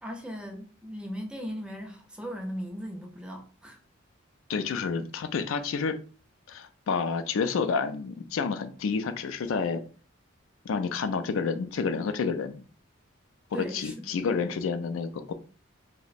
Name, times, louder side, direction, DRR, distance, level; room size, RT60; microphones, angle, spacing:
voice 1, 0.0-3.8 13.5-13.9 14.3-14.5, equal, 5° right, 0.4 m, -38 dB
voice 2, 4.5-6.0 6.5-9.8 10.6-12.6 13.5-15.3, left 5 dB, 80° left, 0.4 m, -29 dB
2.9 x 2.1 x 4.0 m
head